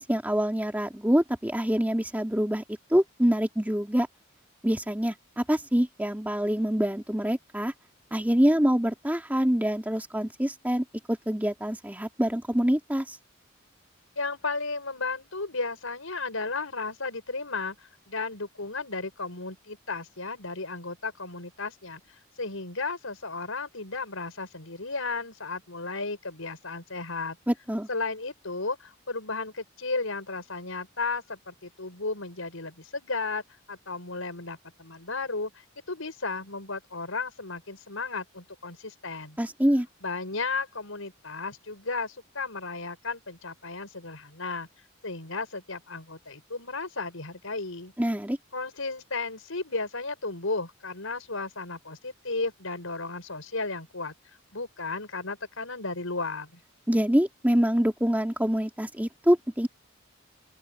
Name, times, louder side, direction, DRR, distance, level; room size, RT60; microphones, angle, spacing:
voice 1, 0.0-2.6 2.9-4.1 4.6-7.7 8.1-13.2 27.5-27.9 39.4-39.9 48.0-48.4 56.9-59.7, equal, 10° right, 2.2 m, -25 dB
voice 2, 14.2-22.0 22.4-27.4 27.9-33.4 33.7-35.5 35.9-39.4 40.0-44.7 45.0-47.9 48.5-54.1 54.5-56.6, left 3 dB, 75° left, 5.7 m, -34 dB
open air
head